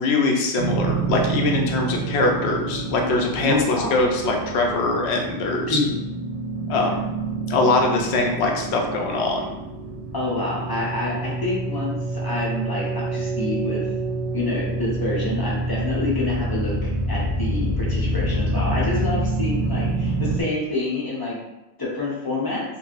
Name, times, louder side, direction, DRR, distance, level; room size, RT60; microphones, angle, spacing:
voice 1, 0.0-5.8 6.7-7.0 7.5-9.4, left 3 dB, 85° left, 1 dB, 0.9 m, -22 dB
sound 1, 0.6-20.4, right 2 dB, 50° right, 0.4 m, -27 dB
voice 2, 3.4-4.0 5.7-6.0 10.1-13.8 14.3-21.4 21.8-22.6, left 2 dB, 25° left, -5 dB, 0.6 m, -27 dB
3.3 x 2.4 x 2.4 m, 0.96 s
omnidirectional pair, 1.1 m